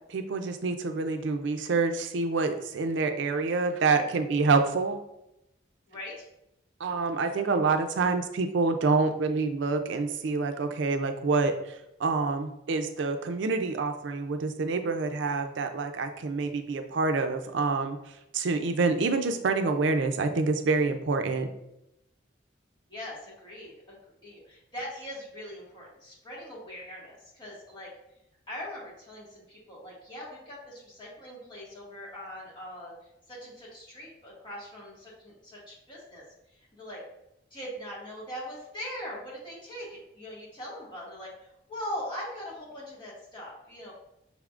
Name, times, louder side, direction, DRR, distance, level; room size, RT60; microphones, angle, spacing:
voice 1, 0.1-5.0 6.8-18.0 18.3-21.5, right 4 dB, 75° right, 7 dB, 0.4 m, -27 dB
voice 2, 5.9-6.3 22.9-27.9 28.5-32.9 33.3-36.2 36.5-37.0 37.5-43.9, equal, 25° left, -6 dB, 1.7 m, -41 dB
5.7 x 3.5 x 2.4 m, 0.84 s
head